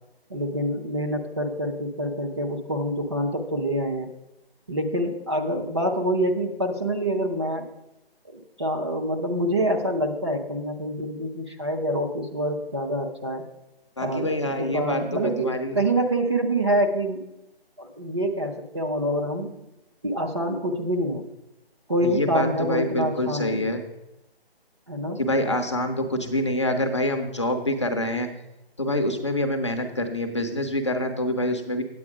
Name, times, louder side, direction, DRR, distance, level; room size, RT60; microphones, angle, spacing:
voice 1, 0.3-4.1 4.7-7.7 8.3-13.4 14.0-17.2 17.8-19.5 20.0-21.2 21.9-23.7 24.9-25.2, right 1 dB, 25° right, 1 dB, 0.7 m, -26 dB
voice 2, 14.0-15.8 22.0-23.8 25.2-28.3 28.8-31.8, left 1 dB, 30° left, 4 dB, 0.6 m, -26 dB
8.8 x 8.6 x 4.8 m, 0.92 s
figure-of-eight pair, 165°, 31 cm